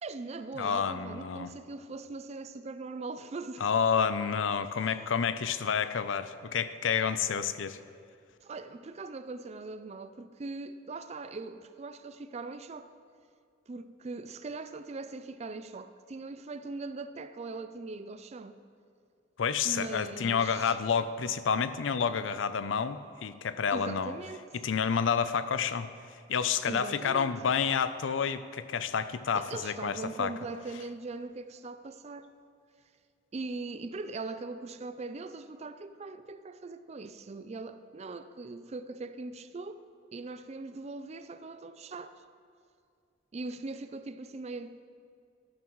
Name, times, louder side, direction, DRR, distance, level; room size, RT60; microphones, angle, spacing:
voice 1, 0.0-3.7 8.4-12.9 13.7-18.6 19.6-20.8 23.7-24.6 26.6-27.4 29.3-32.3 33.3-39.8 40.1-42.2 43.3-44.8, right 3 dB, 35° right, 0.4 m, -40 dB
voice 2, 0.6-1.5 3.6-7.8 19.4-24.1 24.5-25.9 26.3-30.3, left 6 dB, 85° left, 0.5 m, -29 dB
13.0 x 12.0 x 3.1 m
head